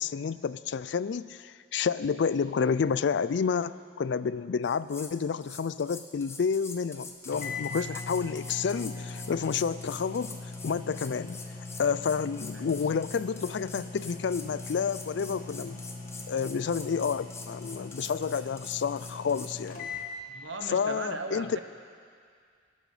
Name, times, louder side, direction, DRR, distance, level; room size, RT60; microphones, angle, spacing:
voice 1, 0.0-10.4 10.6-11.4 11.8-15.8 16.3-19.9 20.7-21.6, left 6 dB, 65° left, 16 dB, 0.4 m, -30 dB
sound 1, 4.6-5.1 5.4-19.5, left 4 dB, 15° left, 0.9 m, -45 dB
sound 2, 6.9-7.0 7.3-20.1, left 3 dB, 45° left, 1.6 m, -41 dB
voice 2, 20.3-21.6, right 3 dB, 75° right, 5 dB, 1.2 m, -38 dB
19.5 x 12.0 x 4.9 m, 2.1 s
head